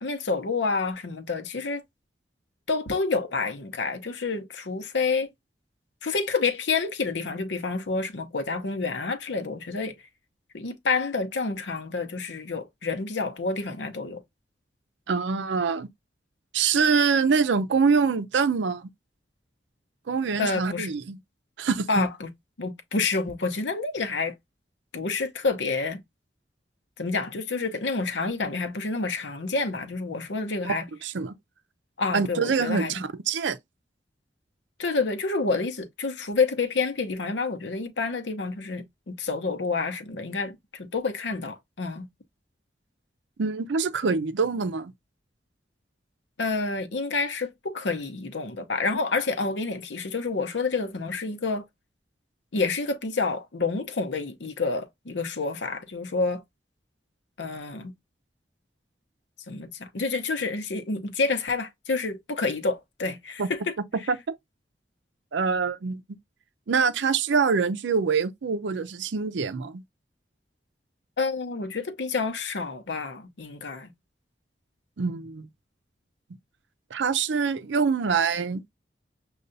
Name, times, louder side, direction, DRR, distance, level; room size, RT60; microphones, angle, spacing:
voice 1, 0.0-1.8 2.7-5.3 6.0-9.9 10.5-14.2 20.4-20.9 21.9-22.3 22.6-24.3 24.9-26.0 27.0-30.8 32.0-33.0 34.8-42.1 46.4-51.7 52.5-56.4 57.4-57.9 59.5-63.8 71.2-73.9, left 4 dB, 85° left, 0.8 m, -28 dB
voice 2, 15.1-15.9 16.5-18.9 20.1-21.2 21.6-22.1 30.6-31.3 32.1-33.6 43.4-44.9 63.4-63.5 64.1-64.2 65.3-66.0 66.7-69.8 75.0-75.5 76.9-78.6, right 5 dB, 90° right, 0.5 m, -25 dB
6.5 x 2.3 x 2.6 m
head